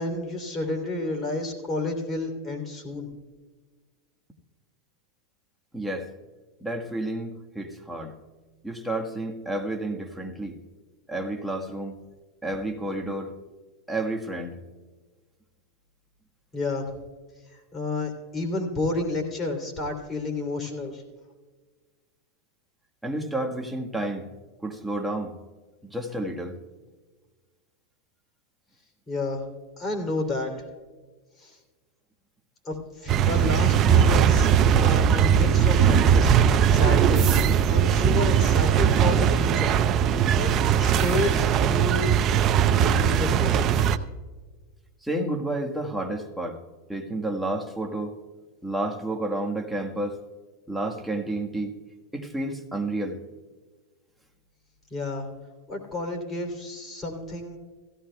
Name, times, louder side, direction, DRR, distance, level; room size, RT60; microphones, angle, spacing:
voice 1, 0.0-3.1 16.5-16.9 17.5-21.0 29.1-29.4 29.8-30.6 31.4-31.6 32.6-36.3 36.7-37.4 37.7-39.7 40.4-40.5 40.8-42.2 42.7-43.7 54.9-55.3 55.7-57.6, left 2 dB, 25° left, 3 dB, 2.9 m, -30 dB
voice 2, 5.7-6.1 6.6-8.1 8.6-10.6 11.1-12.0 12.4-13.3 13.9-14.6 23.0-24.3 24.6-25.3 25.8-26.6 45.0-46.6 46.9-48.2 48.6-50.2 50.7-51.8 52.1-53.2, right 1 dB, 5° right, 1 dB, 1.4 m, -30 dB
sound 1, 33.1-44.0, right 8 dB, 40° right, 0.6 m, -20 dB
16.5 x 15.0 x 2.3 m, 1.4 s
hypercardioid pair, 105°, 0 cm